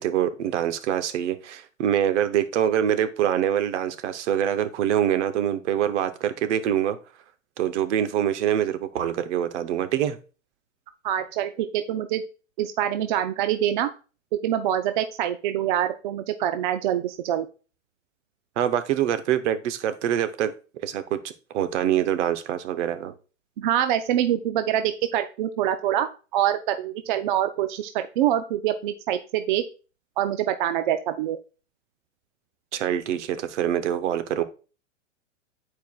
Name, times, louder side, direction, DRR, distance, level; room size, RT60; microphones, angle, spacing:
voice 1, 0.0-7.0 7.6-10.2 18.6-20.5 20.8-21.2 21.5-23.1 32.7-34.4, right 10 dB, 65° right, 11 dB, 0.9 m, -25 dB
voice 2, 11.0-12.2 12.6-13.9 14.4-17.5 23.6-29.6 30.2-31.4, right 11 dB, 40° right, 9 dB, 0.4 m, -25 dB
10.5 x 4.6 x 2.3 m, 0.35 s
hypercardioid pair, 145°, 38 cm